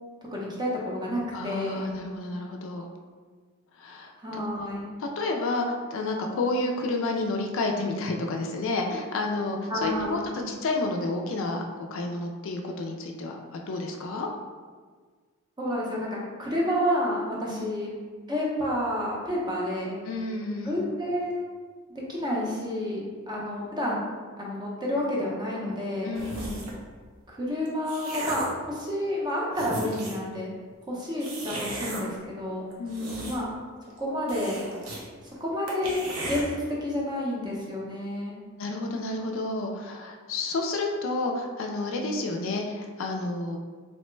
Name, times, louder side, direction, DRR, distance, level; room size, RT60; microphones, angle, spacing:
voice 1, 0.3-2.0 4.2-4.9 9.7-10.3 15.6-17.9 18.3-20.0 20.6-21.5 21.9-24.1 24.4-26.2 27.3-30.5 30.9-32.6 33.3-33.5 34.0-34.7 35.4-38.3, left 1 dB, 20° right, -4 dB, 0.5 m, -30 dB
voice 2, 1.3-2.9 3.7-4.4 5.0-14.3 17.5-17.7 20.0-20.8 26.0-26.6 32.8-33.3 38.6-43.6, left 2 dB, 60° left, 2 dB, 0.3 m, -30 dB
sound 1, 26.1-26.8 27.5-28.6 29.2-29.3 29.5-30.3 31.2-32.0 32.7-33.6 33.9-34.0 34.3-35.0 35.3-35.4 35.7-36.4, right 2 dB, 70° right, 0.6 m, -35 dB
3.0 x 2.1 x 3.1 m, 1.5 s
head